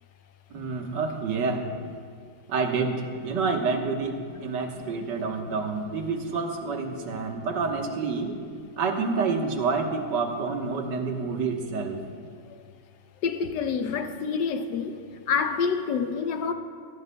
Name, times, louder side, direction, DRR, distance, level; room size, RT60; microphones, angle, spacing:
voice 1, 0.5-1.6 2.5-8.3 8.8-12.0, right 4 dB, 60° right, 1.8 m, -28 dB
voice 2, 13.2-15.0 15.3-16.5, left 6 dB, 65° left, 1.3 m, -27 dB
24.0 x 16.0 x 2.3 m
omnidirectional pair, 2.2 m